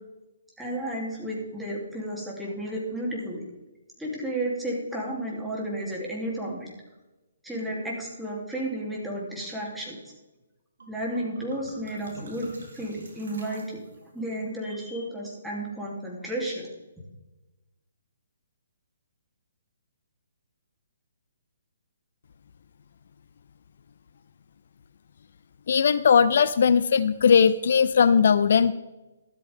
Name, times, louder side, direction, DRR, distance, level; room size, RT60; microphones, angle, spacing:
voice 1, 0.6-3.5 4.0-6.7 7.4-10.0 10.9-13.8 14.1-16.7, right 1 dB, 5° right, -4 dB, 3.2 m, -32 dB
sound 1, 10.8-10.9 11.2-14.2, right 1 dB, 70° right, 3.9 m, -48 dB
voice 2, 25.7-28.7, left 6 dB, 55° left, 14 dB, 0.4 m, -19 dB
13.0 x 12.5 x 3.6 m, 1.1 s
figure-of-eight pair, 130°, 0 cm